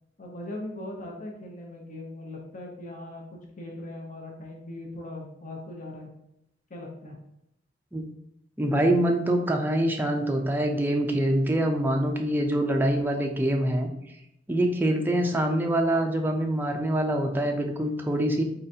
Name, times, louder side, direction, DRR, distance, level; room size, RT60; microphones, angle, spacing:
voice 1, 0.2-3.2 3.6-6.1 6.7-7.2, left 1 dB, 40° left, -1 dB, 0.8 m, -39 dB
voice 2, 8.6-13.9 14.5-18.4, right 1 dB, 10° right, 2 dB, 0.4 m, -25 dB
4.3 x 3.8 x 2.7 m, 0.79 s
head